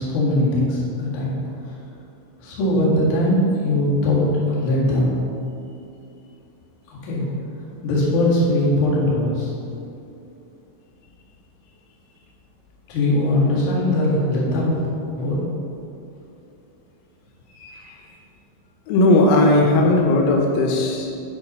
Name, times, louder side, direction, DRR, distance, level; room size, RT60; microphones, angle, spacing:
voice 1, 0.0-1.3 2.4-5.1 7.0-7.3 7.8-9.5 12.9-15.4, left 1 dB, 55° left, -7 dB, 2.6 m, -20 dB
voice 2, 17.6-18.0 18.9-21.2, left 2 dB, 85° left, 0 dB, 3.5 m, -17 dB
9.5 x 4.2 x 5.4 m, 2.7 s
omnidirectional pair, 5.7 m